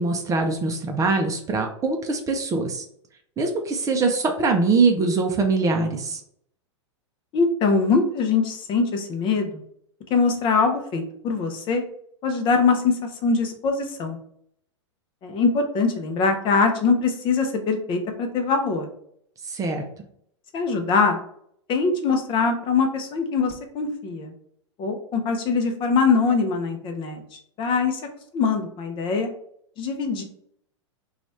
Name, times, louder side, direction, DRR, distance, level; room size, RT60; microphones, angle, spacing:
voice 1, 0.0-2.8 3.4-6.2 19.5-19.8, right 3 dB, 20° right, 4 dB, 0.5 m, -23 dB
voice 2, 7.3-9.6 10.1-11.8 12.2-14.2 15.2-18.9 20.5-21.2 21.7-24.3 24.8-28.0 28.3-29.3 29.8-30.2, left 4 dB, 35° left, 5 dB, 0.7 m, -23 dB
3.0 x 2.4 x 4.1 m, 0.67 s
hypercardioid pair, 105°, 16 cm